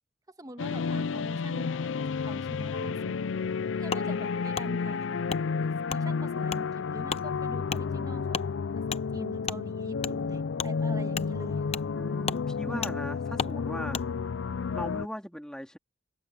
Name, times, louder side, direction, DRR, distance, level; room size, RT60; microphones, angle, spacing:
voice 1, 0.3-3.3 3.7-5.3 5.6-8.4 8.9-11.8 12.7-13.0, right 1 dB, 20° right, 1.6 m, -44 dB
sound 1, 0.6-15.1, left 5 dB, 80° left, 0.4 m, -31 dB
Wood, 3.9-4.1 4.5-4.7 5.3-5.4 5.9-6.0 6.5-6.6 7.1-7.2 7.7-7.8 8.3-8.5 8.9-9.0 9.4-9.6 10.0-10.1 10.6-10.7 11.1-11.3 11.7-11.9 12.2-12.4 12.8-12.9 13.4-13.5 13.9-14.1, left 6 dB, 35° left, 0.8 m, -33 dB
voice 2, 11.9-14.0 14.7-15.8, equal, 5° left, 2.6 m, -38 dB
open air
head